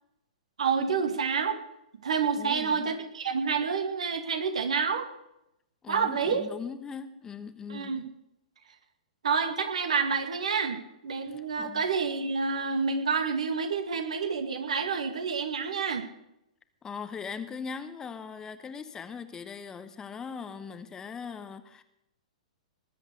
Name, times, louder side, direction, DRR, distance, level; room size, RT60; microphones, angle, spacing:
voice 1, 0.6-1.6 2.0-5.1 5.9-6.5 7.7-8.0 9.2-16.1, right 5 dB, 65° right, 6 dB, 2.3 m, -28 dB
voice 2, 2.3-3.0 5.8-8.1 11.3-11.8 16.8-21.8, left 6 dB, 15° left, 11 dB, 1.0 m, -40 dB
20.0 x 8.2 x 6.5 m, 0.82 s
figure-of-eight pair, 110°, 4 cm